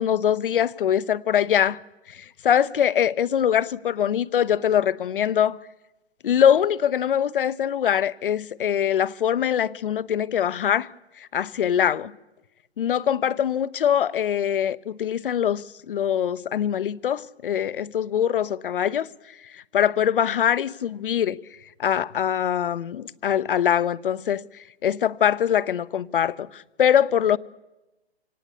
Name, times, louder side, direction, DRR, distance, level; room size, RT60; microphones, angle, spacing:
voice 1, 0.0-1.8 2.1-5.6 6.2-10.9 11.2-12.1 12.8-19.1 19.5-21.4 21.8-24.4 24.8-27.4, left 9 dB, 55° left, 0.8 m, -23 dB
25.0 x 18.0 x 8.4 m
figure-of-eight pair, 140°, 33 cm